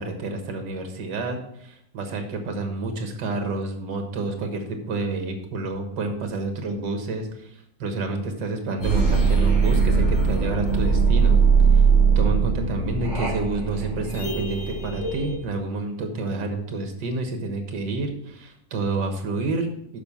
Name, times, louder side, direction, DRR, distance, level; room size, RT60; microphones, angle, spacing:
voice 1, 0.0-11.4 11.7-11.9 12.2-19.7, right 3 dB, 80° right, 4 dB, 2.0 m, -29 dB
sound 1, 8.8-15.4, right 5 dB, 80° left, 4.1 m, -20 dB
7.0 x 5.7 x 7.1 m, 0.76 s
omnidirectional pair, 1.9 m